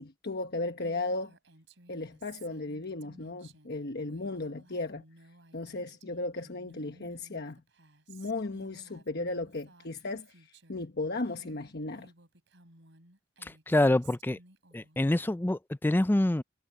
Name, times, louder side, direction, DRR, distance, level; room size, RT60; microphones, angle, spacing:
voice 1, 0.0-1.3 1.9-5.0 5.5-7.6 8.1-12.1, left 2 dB, 55° left, 1.1 m, -36 dB
Female speech woman speaking, 0.8-10.9 11.2-15.1, right 3 dB, 65° right, 6.2 m, -58 dB
voice 2, 13.4-14.4 14.7-16.4, left 1 dB, 10° left, 0.4 m, -26 dB
head